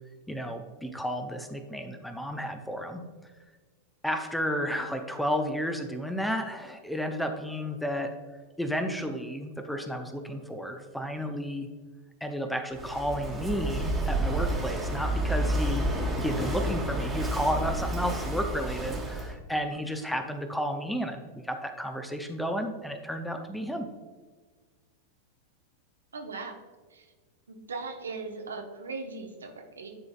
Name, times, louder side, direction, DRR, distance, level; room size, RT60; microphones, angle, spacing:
voice 1, 0.3-3.3 4.0-8.1 8.6-11.7 12.2-15.9 16.2-23.9, equal, 5° left, 6 dB, 0.6 m, -32 dB
Walk footsteps / Wind / Waves surf, 12.7-19.3, right 1 dB, 10° right, 1.3 m, -30 dB
voice 2, 26.1-26.5 26.9-27.1 27.5-29.9, right 4 dB, 70° right, 3 dB, 0.8 m, -39 dB
10.5 x 3.9 x 2.4 m, 1.4 s
figure-of-eight pair, 90°, 0 cm